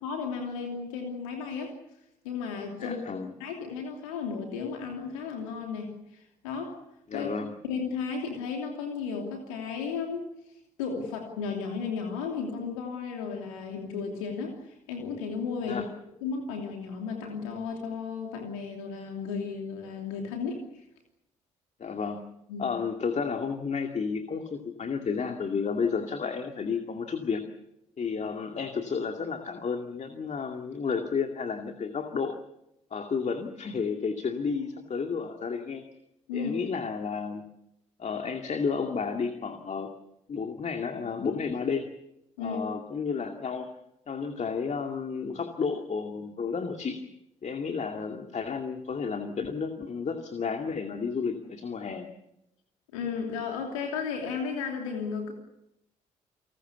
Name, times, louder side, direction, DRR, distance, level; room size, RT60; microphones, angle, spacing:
voice 1, 0.0-1.7 2.2-3.0 3.4-6.8 7.1-7.3 7.6-10.3 10.8-15.8 16.2-20.8 22.5-22.7 36.3-36.6 42.4-42.6 52.9-55.3, left 5 dB, 75° left, 2 dB, 2.9 m, -34 dB
voice 2, 2.8-3.3 7.1-7.5 15.6-15.9 21.8-22.2 22.6-27.4 28.0-32.3 32.9-35.8 36.3-37.4 38.0-39.9 40.3-41.9 42.4-43.7 44.1-47.0 47.4-52.1, left 5 dB, 40° left, 5 dB, 2.4 m, -32 dB
29.5 x 19.5 x 7.1 m, 0.84 s
figure-of-eight pair, 40°, 17 cm